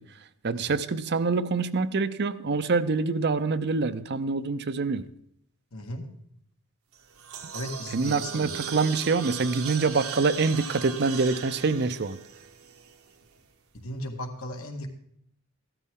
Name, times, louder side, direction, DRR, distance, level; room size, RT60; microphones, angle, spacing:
voice 1, 0.4-5.0 7.9-12.2, right 4 dB, 50° right, 13 dB, 0.6 m, -25 dB
voice 2, 5.7-6.1 7.5-8.5 13.7-14.9, left 1 dB, 75° left, 3 dB, 1.9 m, -36 dB
sound 1, 6.9-13.2, right 7 dB, 85° right, 1.4 m, -38 dB
15.0 x 12.5 x 3.8 m, 0.70 s
head